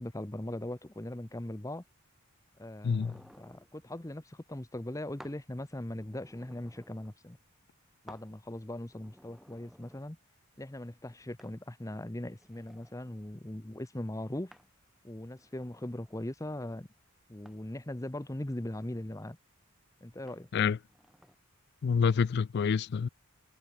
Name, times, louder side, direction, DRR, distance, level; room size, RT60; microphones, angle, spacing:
voice 1, 0.0-1.8 2.6-7.4 8.0-10.2 10.6-14.5 15.0-16.9 17.3-19.4 20.0-20.5, left 1 dB, 15° left, 0.8 m, -40 dB
voice 2, 2.8-3.1 20.5-20.8 21.8-23.1, left 6 dB, 50° left, 0.3 m, -27 dB
sound 1, 2.9-3.7 5.2-5.5 5.9-7.2 8.1-8.3 8.8-10.1 11.4-11.6 12.2-13.0 14.5-14.8 15.4-16.4 17.5-17.7 18.3-19.1 20.2-20.5 20.9-21.4, equal, ahead, 3.8 m, -57 dB
head